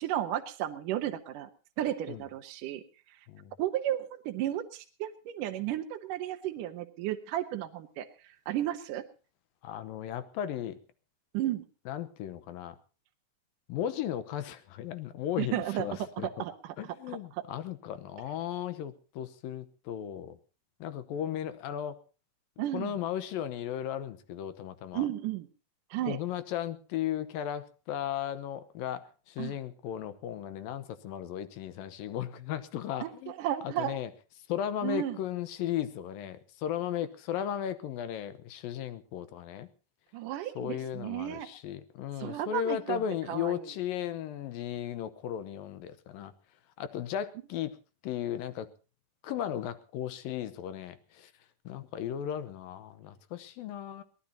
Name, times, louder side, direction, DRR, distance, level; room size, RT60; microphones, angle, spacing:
voice 1, 0.0-1.5 1.8-2.8 3.6-8.1 8.5-9.0 11.3-11.7 15.4-15.9 16.4-16.7 22.6-22.9 24.9-25.5 25.9-26.2 29.4-29.5 33.0-34.0 34.8-35.2 40.1-41.5 42.2-43.0 43.3-43.6, right 12 dB, 70° right, 6 dB, 2.4 m, -33 dB
voice 2, 9.6-10.8 11.9-12.8 13.7-16.4 16.8-20.4 20.8-22.0 22.7-25.0 26.1-33.3 33.6-34.1 34.5-39.7 40.6-46.3 46.8-47.7 48.0-48.7 49.2-51.3 51.7-54.0, left 10 dB, 75° left, 13 dB, 2.6 m, -36 dB
23.0 x 17.5 x 2.8 m, 0.36 s
omnidirectional pair, 4.3 m